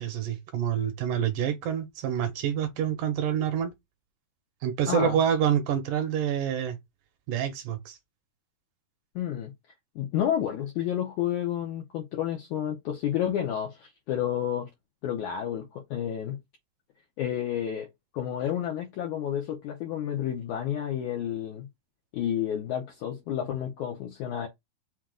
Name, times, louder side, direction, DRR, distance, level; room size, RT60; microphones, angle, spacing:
voice 1, 0.0-3.7 4.6-6.8 7.3-8.0, right 9 dB, 70° right, 2.4 m, -27 dB
voice 2, 4.9-5.2 9.2-9.5 10.0-14.7 15.0-16.4 17.2-17.9 18.1-21.7 22.1-24.5, left 10 dB, 75° left, 1.8 m, -30 dB
6.1 x 2.3 x 3.7 m
omnidirectional pair, 4.4 m